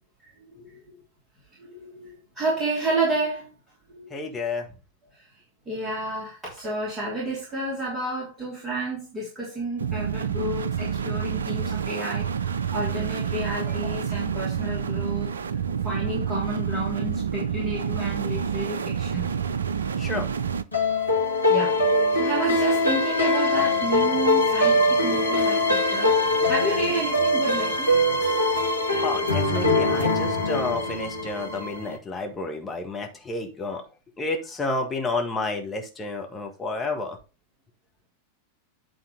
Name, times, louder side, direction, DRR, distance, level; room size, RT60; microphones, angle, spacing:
voice 1, 0.2-0.8 1.6-3.5 3.9-4.2 5.1-5.3 5.7-15.3 15.8-19.6 21.5-21.8 22.1-26.2 26.4-28.2, right 2 dB, 15° right, 3.1 m, -31 dB
voice 2, 4.1-4.7 20.0-20.3 25.1-25.2 29.0-33.8 34.2-37.2, left 3 dB, 15° left, 1.7 m, -30 dB
sound 1, 9.8-20.6, right 7 dB, 70° right, 0.4 m, -28 dB
sound 2, 20.7-32.0, left 1 dB, 85° left, 1.4 m, -22 dB
8.8 x 3.8 x 5.3 m
figure-of-eight pair, 90°, 0 cm